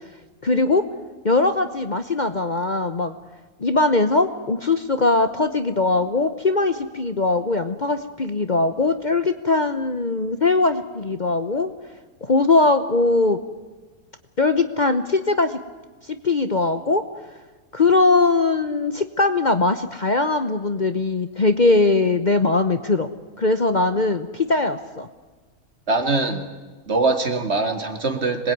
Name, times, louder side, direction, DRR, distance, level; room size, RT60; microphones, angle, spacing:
voice 1, 0.4-0.9 1.2-3.2 3.6-11.7 12.2-13.4 14.4-15.6 16.2-17.0 17.7-23.1 23.4-25.1, left 3 dB, 35° left, 9 dB, 1.0 m, -20 dB
voice 2, 25.9-26.4 26.9-28.5, right 3 dB, 50° right, 6 dB, 2.5 m, -22 dB
25.5 x 20.0 x 9.4 m, 1.3 s
omnidirectional pair, 1.5 m